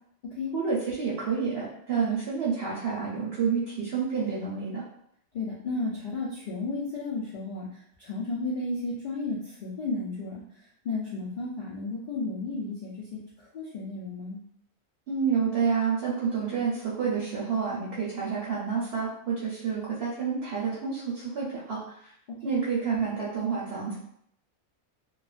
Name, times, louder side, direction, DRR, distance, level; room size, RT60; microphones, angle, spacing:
voice 1, 0.5-4.8 15.1-21.9 22.4-24.0, right 6 dB, 55° right, -7 dB, 0.7 m, -29 dB
voice 2, 5.3-7.7 8.0-10.4 10.8-13.2 13.5-14.4 22.5-22.6, left 3 dB, 80° left, -8 dB, 0.4 m, -33 dB
2.4 x 2.1 x 2.4 m, 0.69 s
omnidirectional pair, 1.5 m